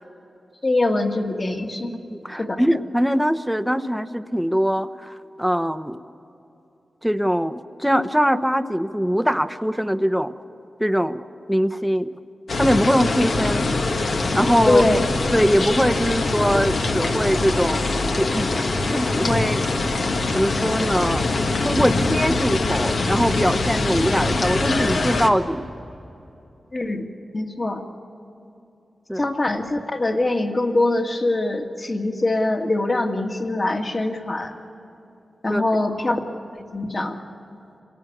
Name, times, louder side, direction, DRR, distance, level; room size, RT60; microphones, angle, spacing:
voice 1, 0.6-1.9 2.4-2.6 14.7-15.0 26.7-27.1 27.3-27.8 29.2-34.5 35.4-36.2 36.7-37.2, left 2 dB, 40° left, 3 dB, 2.1 m, -23 dB
voice 2, 2.1-6.0 7.0-10.3 10.8-11.2 11.5-12.1 12.6-13.7 14.3-14.8 15.3-17.8 18.2-18.5 18.9-19.6 20.3-21.2 21.6-25.7 29.1-29.3 35.5-35.6, equal, ahead, 10 dB, 1.0 m, -22 dB
sound 1, 12.5-25.3, left 3 dB, 75° left, 1.6 m, -23 dB
26.5 x 18.5 x 8.7 m, 2.9 s
cardioid pair, 50°, 0 cm